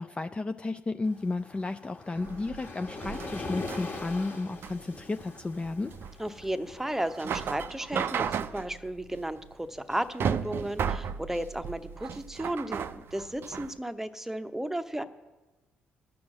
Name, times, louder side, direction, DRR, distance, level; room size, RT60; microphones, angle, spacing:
voice 1, 0.0-5.9, left 3 dB, 20° left, 8 dB, 0.4 m, -33 dB
Waves surf, 1.0-8.2, left 3 dB, 40° left, 1.5 m, -42 dB
sound 1, 2.2-13.7, right 7 dB, 50° right, 0.4 m, -35 dB
voice 2, 6.2-15.0, right 1 dB, 5° right, 10 dB, 0.8 m, -34 dB
12.0 x 6.1 x 7.4 m, 1.2 s
figure-of-eight pair, 45°, 5 cm